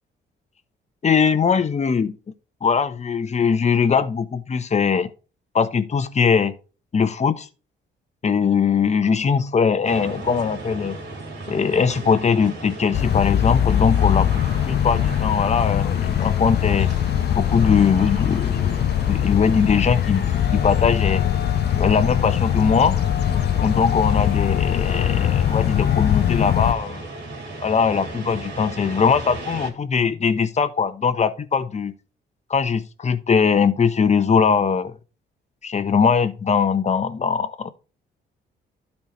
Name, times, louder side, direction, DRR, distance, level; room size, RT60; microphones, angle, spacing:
voice 1, 1.0-2.2 2.6-5.1 5.5-6.5 6.9-7.5 8.2-11.0 11.5-16.9 17.3-18.8 19.1-20.2 20.5-21.2 21.7-23.0 23.6-27.1 27.6-31.9 32.5-34.9 35.6-37.7, left 6 dB, 35° left, 1.0 m, -21 dB
sound 1, 9.8-29.7, right 2 dB, 65° right, 3.2 m, -35 dB
sound 2, 12.9-26.7, left 10 dB, 55° left, 0.5 m, -21 dB
12.0 x 4.4 x 3.1 m
cardioid pair, 90°, 20 cm